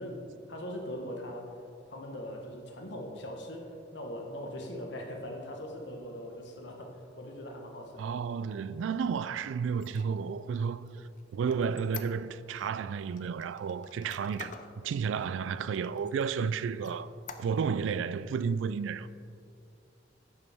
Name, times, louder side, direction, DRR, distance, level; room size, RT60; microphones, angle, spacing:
voice 1, 0.0-1.5 1.9-8.1, equal, 65° left, 1.2 m, -41 dB
voice 2, 8.0-10.9 11.3-14.5 14.8-17.1 17.4-19.1, right 6 dB, 80° right, 0.3 m, -32 dB
Squeak, 9.7-12.7 13.2-14.8 15.2-15.3 15.7-16.4 16.8-17.8, left 7 dB, 40° left, 0.5 m, -47 dB
10.0 x 7.0 x 3.5 m
head